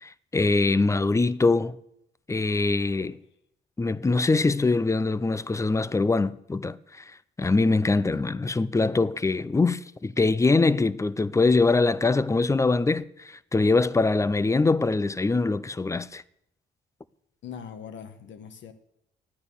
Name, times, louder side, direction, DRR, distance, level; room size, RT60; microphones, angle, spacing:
voice 1, 0.0-1.8 2.3-3.2 3.8-7.1 7.4-16.2, left 3 dB, 15° left, 0.5 m, -23 dB
voice 2, 17.4-18.7, left 7 dB, 70° left, 1.3 m, -41 dB
12.0 x 9.2 x 6.9 m
cardioid pair, 90°, 20 cm